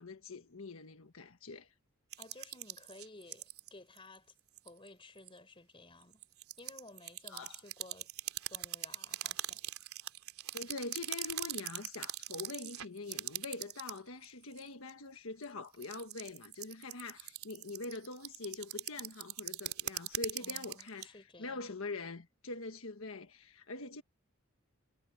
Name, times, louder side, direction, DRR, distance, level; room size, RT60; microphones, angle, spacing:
voice 1, 0.0-1.7 7.3-7.6 10.5-24.0, left 3 dB, 75° left, 1.4 m, -44 dB
sound 1, 2.1-3.7 4.0-4.2 4.6-4.9 5.2-5.3 6.0-14.0 14.2-14.9 15.4-21.1, right 13 dB, 85° right, 3.3 m, -41 dB
voice 2, 2.2-4.3 4.6-6.2 6.6-8.1 8.5-9.6 20.4-21.8, left 2 dB, 25° left, 3.9 m, -55 dB
head